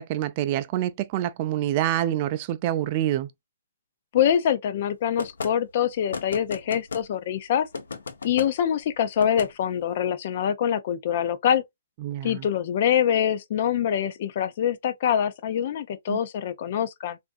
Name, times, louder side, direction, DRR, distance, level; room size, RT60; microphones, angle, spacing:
voice 1, 0.0-3.3 12.0-12.5 16.1-16.2, right 12 dB, 35° right, 0.4 m, -26 dB
voice 2, 4.1-7.7 8.2-11.6 12.2-17.2, left 9 dB, 45° left, 0.5 m, -24 dB
sound 1, 5.2-5.5 6.1-7.1 7.7-8.5 9.2-9.5, left 5 dB, 80° left, 0.7 m, -33 dB
3.4 x 2.5 x 2.4 m
hypercardioid pair, 155°, 0 cm